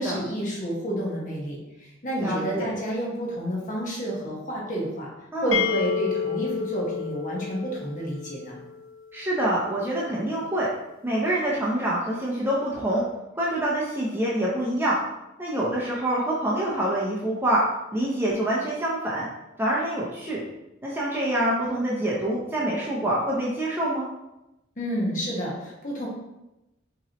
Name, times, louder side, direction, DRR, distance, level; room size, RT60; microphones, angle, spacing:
voice 1, 0.0-5.1 5.4-8.6 24.8-26.1, right 1 dB, 40° left, -3 dB, 1.3 m, -30 dB
voice 2, 2.2-2.7 5.3-5.6 9.1-10.7 11.0-13.0 13.3-15.0 15.4-19.3 19.6-20.4 20.8-24.1, right 1 dB, 10° right, -6 dB, 0.6 m, -26 dB
sound 1, 5.5-9.2, left 7 dB, 70° left, 0.5 m, -30 dB
5.8 x 3.1 x 2.9 m, 0.94 s
head